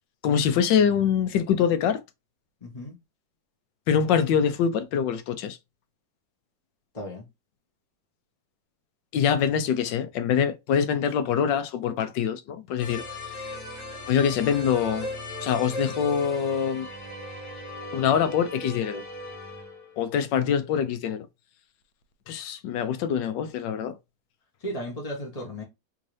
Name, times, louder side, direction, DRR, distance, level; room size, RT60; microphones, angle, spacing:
voice 1, 0.2-2.0 3.9-5.6 9.1-13.0 14.1-15.1 15.4-16.9 17.9-19.0 20.0-21.3 22.3-24.0, left 8 dB, 75° left, 1.3 m, -24 dB
voice 2, 2.6-3.0 6.9-7.3 24.6-25.6, equal, 30° left, 0.7 m, -35 dB
sound 1, 12.8-20.0, left 1 dB, 45° left, 1.7 m, -37 dB
3.6 x 2.6 x 3.1 m
omnidirectional pair, 2.1 m